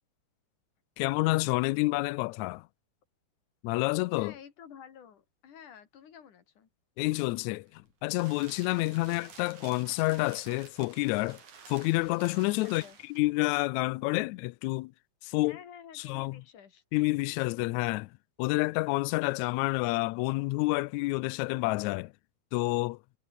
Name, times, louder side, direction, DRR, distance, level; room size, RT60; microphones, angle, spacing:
voice 1, 1.0-2.7 3.6-4.3 7.0-11.4 11.7-12.8 13.1-14.9 15.2-15.6 15.9-16.4 16.9-18.1 18.4-22.1 22.5-23.0, left 22 dB, 85° left, 1.6 m, -29 dB
voice 2, 4.2-6.7 12.6-13.0 15.4-16.8, left 8 dB, 70° left, 4.0 m, -50 dB
sound 1, 7.6-13.3, right 6 dB, 60° right, 5.0 m, -52 dB
omnidirectional pair, 3.8 m